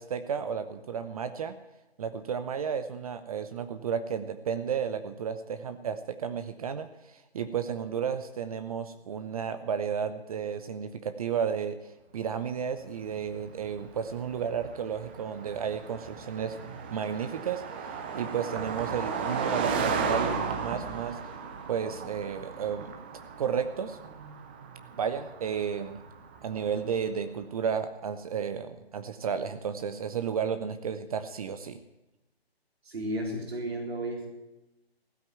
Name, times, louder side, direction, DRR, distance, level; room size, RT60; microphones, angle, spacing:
voice 1, 0.0-1.6 2.0-11.8 12.1-21.2 21.7-22.9 23.4-24.0 25.0-26.0 26.4-31.8, right 7 dB, 35° right, 11 dB, 0.8 m, -33 dB
Car passing by, 13.2-26.9, right 5 dB, 10° right, 0.5 m, -35 dB
voice 2, 32.8-34.3, right 1 dB, 75° right, 1 dB, 4.0 m, -33 dB
16.0 x 9.0 x 8.7 m, 1.0 s
figure-of-eight pair, 145°, 31 cm